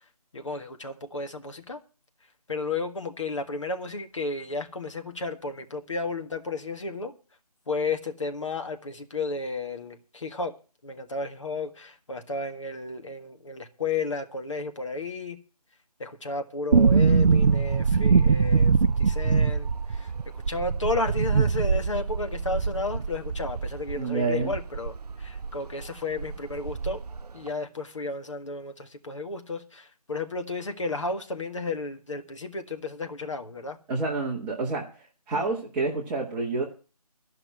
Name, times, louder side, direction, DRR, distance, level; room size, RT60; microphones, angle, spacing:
voice 1, 0.3-1.8 2.5-7.1 7.7-10.5 10.8-15.4 16.0-18.7 19.0-20.1 20.5-27.0 27.3-33.8 35.3-35.4, left 3 dB, 50° left, 1.7 m, -33 dB
sound 1, 16.7-25.5 25.8-25.9 26.2-27.2 27.5-27.6, right 5 dB, 80° right, 0.5 m, -23 dB
voice 2, 23.9-24.5 33.9-34.9 35.3-36.6, right 3 dB, 5° right, 1.3 m, -28 dB
13.5 x 5.9 x 9.4 m
figure-of-eight pair, 165°, 20 cm